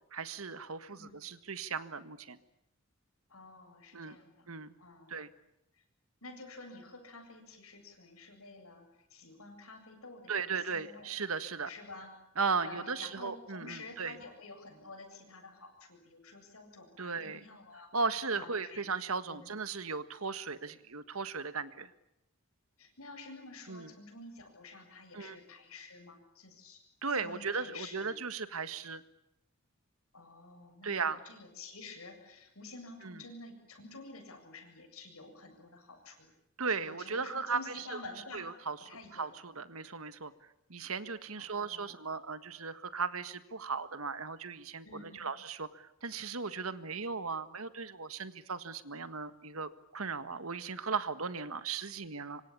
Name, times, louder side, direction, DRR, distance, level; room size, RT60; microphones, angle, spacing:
voice 1, 0.1-2.4 3.9-4.2 4.5-4.7 5.1-5.3 10.3-11.7 12.4-14.2 17.0-17.5 17.9-21.9 23.7-23.9 25.1-25.4 27.0-29.0 30.8-31.2 33.0-33.2 36.6-38.0 38.3-38.8 39.1-40.3 40.7-52.4, right 5 dB, 85° right, 12 dB, 1.7 m, -37 dB
voice 2, 3.3-4.5 4.8-5.2 5.7-5.8 6.2-11.1 11.7-12.1 12.6-17.9 18.3-18.9 19.3-19.5 22.8-26.8 27.1-28.2 30.1-36.3 36.6-39.3 41.4-42.0 44.8-45.3, left 3 dB, 85° left, 5 dB, 7.7 m, -50 dB
25.5 x 25.0 x 8.7 m, 0.83 s
head